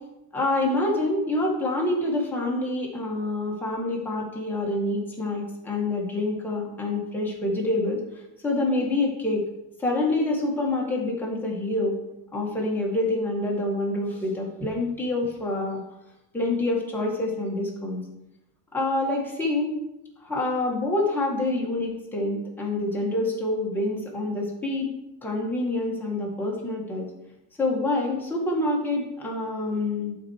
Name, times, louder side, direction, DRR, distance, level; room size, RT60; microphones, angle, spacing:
voice 1, 0.3-8.0 8.4-9.4 9.8-12.0 12.3-15.8 16.3-18.0 18.7-19.7 20.2-24.9 25.2-27.1 27.6-30.2, left 2 dB, 5° left, -4 dB, 1.9 m, -26 dB
11.5 x 4.6 x 4.8 m, 0.88 s
cardioid pair, 160°, 39 cm